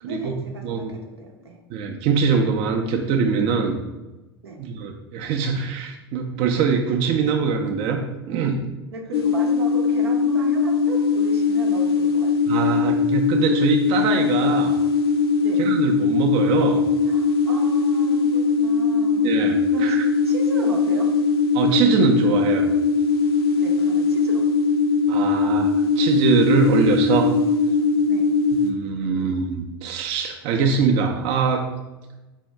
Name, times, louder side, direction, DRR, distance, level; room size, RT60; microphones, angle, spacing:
voice 1, 0.0-1.6 4.4-4.6 8.3-8.4 8.9-12.6 15.4-15.6 17.1-19.3 19.7-21.1 23.5-24.5 28.1-28.3, right 3 dB, 85° right, 1 dB, 0.7 m, -36 dB
voice 2, 0.6-1.0 1.7-3.8 4.6-8.6 12.5-14.8 15.6-16.8 19.2-20.0 21.5-22.7 25.1-27.3 28.6-31.7, right 5 dB, 50° right, 3 dB, 0.5 m, -23 dB
sound 1, 9.1-28.7, left 4 dB, 75° left, 0.5 m, -20 dB
4.4 x 2.6 x 3.3 m, 1.1 s
hypercardioid pair, 85°, 13 cm